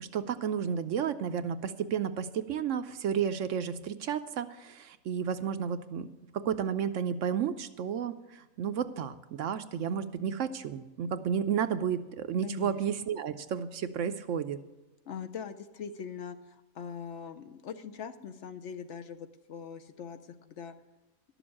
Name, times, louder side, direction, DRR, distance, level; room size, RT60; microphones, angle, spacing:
voice 1, 0.0-6.1 6.3-14.6, right 8 dB, 70° right, 10 dB, 0.9 m, -32 dB
voice 2, 12.4-12.8 15.1-20.2 20.5-20.7, left 7 dB, 60° left, 9 dB, 0.9 m, -42 dB
12.0 x 7.0 x 8.6 m, 1.0 s
omnidirectional pair, 1.5 m